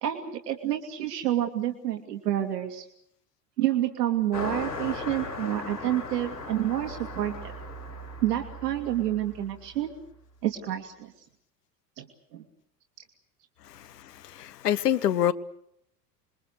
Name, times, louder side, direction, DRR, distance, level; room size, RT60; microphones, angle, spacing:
voice 1, 0.0-2.8 3.6-7.5 8.2-10.0 10.4-11.1 12.0-12.1 12.3-12.4, right 12 dB, 70° right, 2.3 m, -29 dB
Car passing by, 4.3-10.1, left 2 dB, 85° left, 6.8 m, -38 dB
voice 2, 13.7-15.3, left 10 dB, 70° left, 1.3 m, -27 dB
27.5 x 22.0 x 6.8 m
figure-of-eight pair, 80°, 49 cm